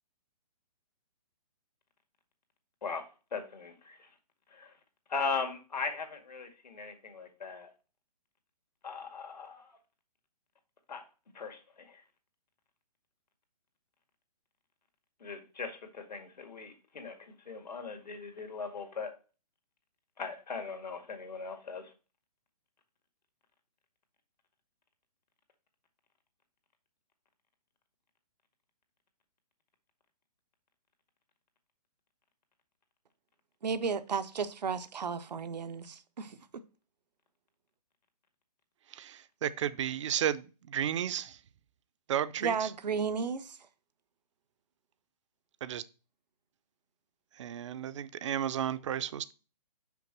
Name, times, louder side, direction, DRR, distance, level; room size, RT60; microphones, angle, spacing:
voice 1, 3.3-4.1 4.5-4.7 5.1-7.7 8.8-9.8 10.9-11.0 11.3-12.0 15.2-19.1 20.2-21.9, left 4 dB, 90° left, 2.0 m, -39 dB
voice 2, 33.6-36.4 42.4-43.6, right 5 dB, 85° right, 0.9 m, -33 dB
voice 3, 38.9-41.4 42.1-42.7 45.6-45.8 47.4-49.3, right 10 dB, 45° right, 0.6 m, -33 dB
5.9 x 5.1 x 6.0 m
hypercardioid pair, 155°, 21 cm